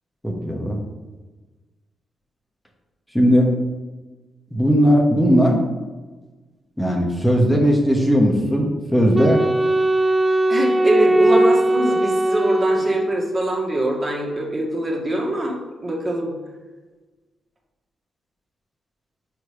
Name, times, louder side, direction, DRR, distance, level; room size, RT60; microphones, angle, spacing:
voice 1, 0.2-0.8 3.1-3.5 4.5-5.6 6.8-9.4, equal, 5° left, 0 dB, 1.2 m, -17 dB
Wind instrument woodwind instrument, 9.1-13.6, right 1 dB, 15° right, 0.4 m, -19 dB
voice 2, 10.5-15.5 15.8-16.3, right 1 dB, 35° right, -1 dB, 1.7 m, -23 dB
4.7 x 4.3 x 4.9 m, 1.2 s
hypercardioid pair, 40°, 0 cm